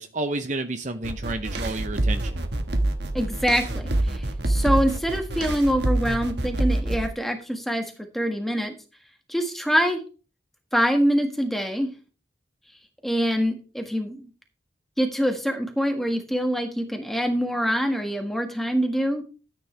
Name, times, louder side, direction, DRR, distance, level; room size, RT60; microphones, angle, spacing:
voice 1, 0.0-2.4, right 2 dB, 40° right, 8 dB, 0.8 m, -30 dB
sound 1, 1.0-7.1, right 1 dB, 65° right, 1.5 m, -26 dB
voice 2, 3.1-8.8 9.3-10.0 10.7-11.9 13.0-14.3 15.0-19.2, equal, ahead, 4 dB, 1.7 m, -25 dB
13.0 x 9.2 x 3.4 m, 0.35 s
head